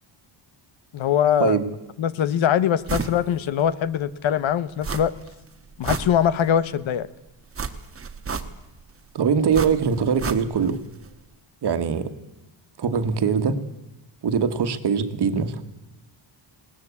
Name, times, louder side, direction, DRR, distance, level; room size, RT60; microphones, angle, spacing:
voice 1, 0.9-1.6 2.0-5.1 5.8-7.1, left 9 dB, 65° left, 16 dB, 1.1 m, -22 dB
sound 1, 2.9-3.2 3.6-3.7 4.8-5.3 5.6-6.6 7.5-8.8 9.5-10.8 11.0-11.1, right 5 dB, 25° right, 1.3 m, -31 dB
voice 2, 9.1-10.8 11.6-12.1 12.8-13.6 14.2-15.6, right 6 dB, 55° right, 9 dB, 1.7 m, -22 dB
21.0 x 19.0 x 8.4 m, 0.99 s
wide cardioid pair, 160°, 50 cm